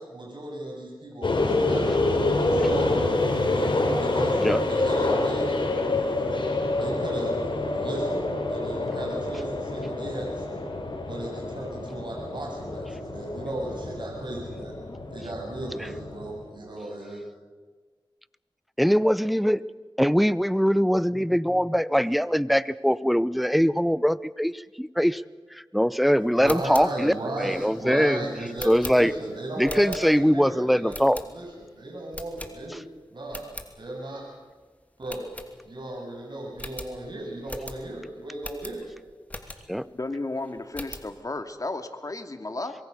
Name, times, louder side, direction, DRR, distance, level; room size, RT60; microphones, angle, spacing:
voice 1, 0.0-3.7 4.0-4.4 4.7-5.5 6.7-7.4 7.8-8.2 8.5-10.6 11.1-14.7 15.1-17.2 26.3-30.9 31.3-32.8 33.1-33.5 33.8-34.2 35.0-35.2 35.7-38.8, right 1 dB, 60° right, -1 dB, 7.2 m, -35 dB
sound 1, 1.2-16.4, left 2 dB, 70° left, 4.2 m, -27 dB
voice 2, 18.8-19.6 20.0-25.2 25.5-28.2 28.6-29.1 29.6-31.2 39.7-39.9, equal, ahead, 17 dB, 0.7 m, -22 dB
sound 2, 26.3-30.4 30.9-31.6 32.1-32.9 33.2-33.7 34.2-34.3 34.5-34.6 35.1-36.0 36.2-36.3 36.6-39.9 40.3-41.1, left 1 dB, 15° left, 2.8 m, -41 dB
voice 3, 39.9-42.7, left 2 dB, 40° left, 7 dB, 2.2 m, -33 dB
25.0 x 23.0 x 6.8 m, 1.4 s
cardioid pair, 50°, 9 cm